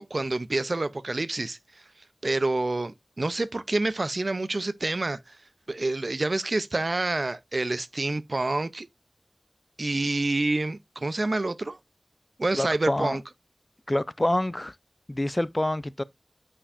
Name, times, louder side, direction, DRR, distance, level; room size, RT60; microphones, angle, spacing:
voice 1, 0.0-1.6 2.2-5.2 5.7-8.9 9.8-11.8 12.4-13.2, right 2 dB, 65° right, 0.4 m, -27 dB
voice 2, 12.6-13.2 13.9-14.7 15.1-16.0, left 1 dB, 30° left, 0.4 m, -26 dB
8.7 x 4.8 x 2.4 m
wide cardioid pair, 55°, 0 cm